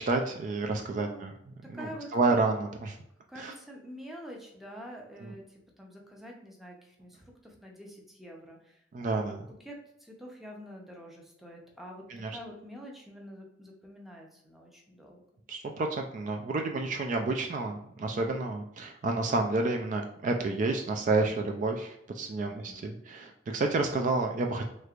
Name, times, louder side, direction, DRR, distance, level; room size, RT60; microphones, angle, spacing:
voice 1, 0.0-1.3 1.7-2.9 3.4-3.5 5.2-5.3 8.9-9.4 12.1-12.3 15.5-24.7, right 3 dB, 45° right, 4 dB, 0.3 m, -30 dB
voice 2, 0.9-2.4 3.3-15.2 22.3-22.9, equal, ahead, -1 dB, 0.6 m, -47 dB
3.2 x 3.2 x 2.4 m, 0.77 s
head